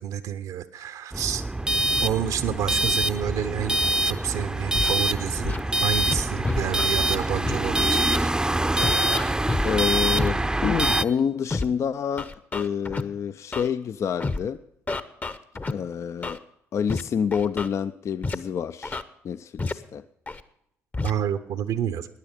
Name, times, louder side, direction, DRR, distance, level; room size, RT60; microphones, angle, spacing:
voice 1, 0.0-1.4 2.0-3.8 4.0-8.0 21.0-22.1, right 9 dB, 60° right, 0.7 m, -29 dB
sound 1, 1.1-11.0, right 1 dB, 10° right, 0.6 m, -25 dB
Scratching (performance technique), 4.8-4.9 5.4-5.6 6.1-6.9 7.5-7.6 8.1-8.3 8.8-9.7 10.2-10.3 10.8-11.0 11.5-11.7 12.2-13.0 13.5-13.7 14.2-14.4 14.9-15.7 16.2-16.4 16.9-17.0 17.3-17.7 18.2-18.4 18.8-19.0 19.6-19.7 20.3-20.4 20.9-21.1, left 3 dB, 25° left, 0.9 m, -29 dB
voice 2, 8.8-14.6 15.7-16.4 16.7-20.0, left 7 dB, 40° left, 0.4 m, -28 dB
16.5 x 10.5 x 5.1 m
figure-of-eight pair, 45°, 7 cm